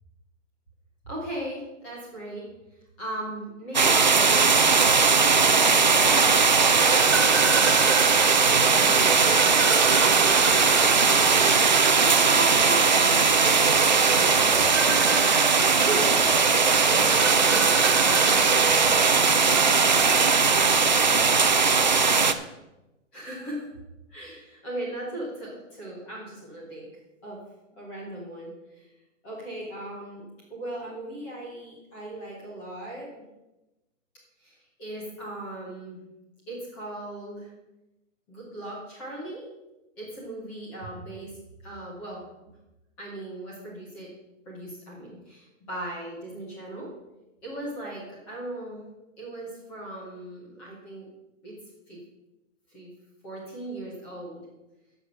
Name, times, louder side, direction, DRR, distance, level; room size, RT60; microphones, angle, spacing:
voice 1, 1.0-2.4 2.7-4.7 5.1-7.3 8.6-9.3 10.8-11.5 12.3-18.3 19.3-19.7 20.0-20.6 21.8-22.5 23.1-23.7 24.1-26.9 27.2-27.4 27.8-28.9 29.2-33.2 34.4-36.0 36.5-37.5 38.3-39.4 40.0-41.3 41.6-42.2 43.0-44.1 44.4-46.9 47.4-48.8 49.2-51.1 51.4-51.6 51.9-52.0 52.7-52.9 53.2-54.4, right 1 dB, 5° left, -5 dB, 0.7 m, -38 dB
sound 1, 3.7-22.3, right 5 dB, 40° right, 0.4 m, -20 dB
sound 2, 6.6-21.4, right 6 dB, 65° right, 1.4 m, -29 dB
10.0 x 7.0 x 6.2 m, 0.99 s
hypercardioid pair, 180°, 38 cm